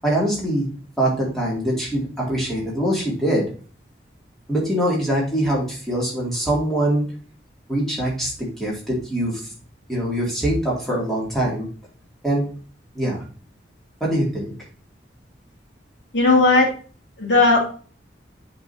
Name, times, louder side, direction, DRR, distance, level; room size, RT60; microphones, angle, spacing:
voice 1, 0.0-0.7 1.0-3.5 4.5-7.0 7.7-9.4 9.9-11.7 12.2-12.5 12.9-13.2 14.0-14.5, right 1 dB, ahead, -5 dB, 2.6 m, -23 dB
voice 2, 16.1-16.7 17.2-17.7, left 3 dB, 90° left, -1 dB, 2.6 m, -16 dB
7.8 x 5.2 x 2.8 m, 0.40 s
head